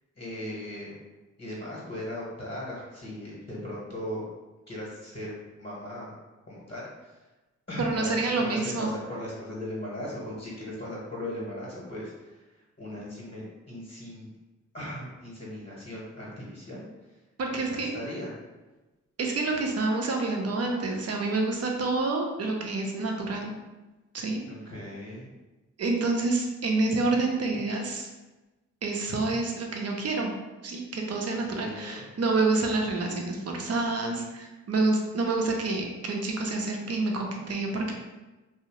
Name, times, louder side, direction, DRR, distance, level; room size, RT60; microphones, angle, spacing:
voice 1, 0.1-1.0 1.4-4.2 4.7-6.1 6.5-7.2 7.7-12.4 12.8-14.3 14.7-16.9 17.5-18.3 24.5-25.3 31.5-32.1, left 1 dB, 30° left, -6 dB, 1.0 m, -38 dB
voice 2, 7.8-8.9 17.4-18.0 19.2-23.5 24.1-24.4 25.8-28.1 28.8-30.3 30.6-37.9, right 3 dB, 50° right, 1 dB, 0.6 m, -28 dB
2.6 x 2.0 x 2.9 m, 1.1 s
cardioid pair, 50°, 31 cm